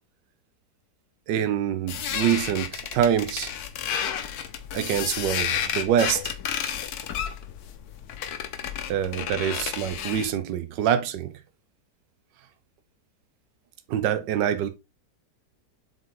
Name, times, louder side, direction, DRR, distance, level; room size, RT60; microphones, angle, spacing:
voice 1, 1.3-3.5 3.9-4.0 4.7-6.3 8.9-11.3 13.9-14.7, right 9 dB, 85° right, 1.4 m, -25 dB
sound 1, 1.9-10.4, left 8 dB, 65° left, 1.2 m, -31 dB
7.5 x 3.8 x 3.7 m
omnidirectional pair, 1.9 m